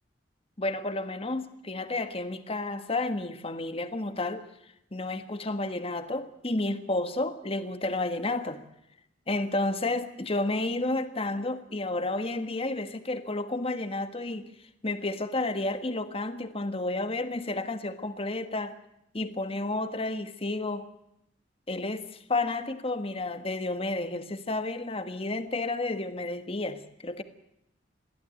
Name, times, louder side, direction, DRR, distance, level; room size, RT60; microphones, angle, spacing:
voice 1, 0.6-4.4 4.9-8.6 9.3-14.5 14.8-18.7 19.1-20.9 21.7-27.2, left 2 dB, 30° left, 9 dB, 1.6 m, -31 dB
22.0 x 15.5 x 9.1 m, 0.80 s
head